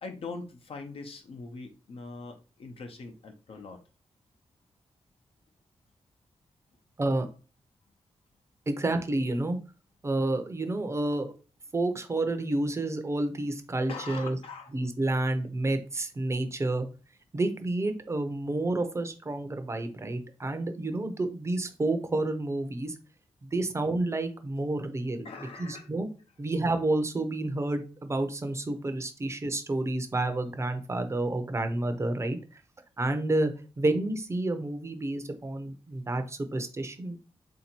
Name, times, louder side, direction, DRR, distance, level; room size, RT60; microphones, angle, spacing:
voice 1, 0.0-3.8 13.9-14.7 25.2-25.9, left 3 dB, 65° left, 6 dB, 0.8 m, -42 dB
voice 2, 8.7-9.6 10.0-11.3 11.7-14.4 14.7-16.9 17.3-22.9 23.4-25.3 25.6-26.1 26.4-32.6 33.0-33.5 33.8-37.2, right 2 dB, 25° right, 8 dB, 0.6 m, -29 dB
3.7 x 2.7 x 4.4 m, 0.35 s
wide cardioid pair, 130°, 11 cm